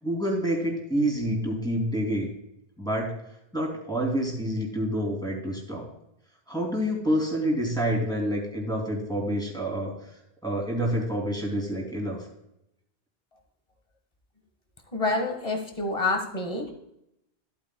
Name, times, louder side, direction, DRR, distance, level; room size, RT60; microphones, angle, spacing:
voice 1, 0.0-2.3 2.8-3.1 3.5-5.9 6.5-9.9 10.4-12.3, equal, 5° left, -1 dB, 2.9 m, -28 dB
voice 2, 14.9-16.7, left 2 dB, 35° left, 4 dB, 1.6 m, -27 dB
15.0 x 8.5 x 2.3 m, 0.83 s
omnidirectional pair, 1.0 m